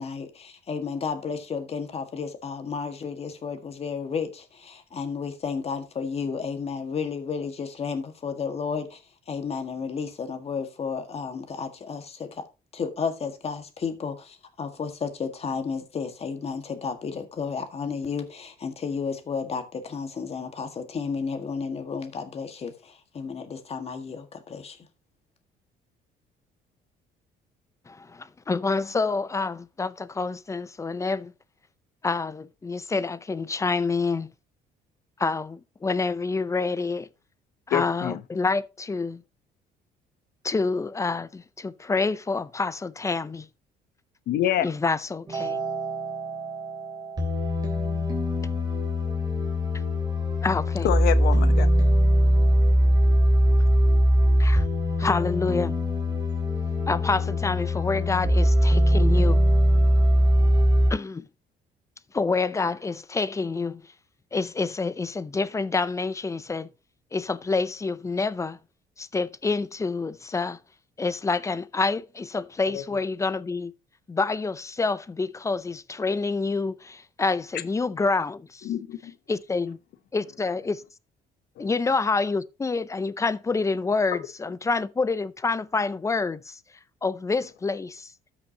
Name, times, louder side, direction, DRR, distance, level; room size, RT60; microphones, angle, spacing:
voice 1, 0.0-12.4 12.7-24.8, left 5 dB, 35° left, 1.7 m, -32 dB
voice 2, 27.9-31.3 32.0-34.3 35.2-37.1 37.7-39.2 40.4-43.5 44.6-45.6 50.4-50.9 54.4-54.6 55.0-55.8 56.9-59.4 60.9-61.2 62.1-63.8 64.3-66.7 67.1-68.6 69.0-70.6 71.0-73.7 74.1-78.6 79.3-79.8 80.1-80.8 81.6-86.6 87.0-88.1, left 4 dB, 20° left, 0.6 m, -27 dB
voice 3, 37.7-38.2 44.3-44.7 50.8-51.7 72.7-73.0 78.6-79.1 81.6-81.7, left 12 dB, 70° left, 0.9 m, -27 dB
sound 1, 45.3-60.9, equal, 25° right, 3.3 m, -22 dB
13.0 x 6.0 x 2.9 m
cardioid pair, 110°, 17 cm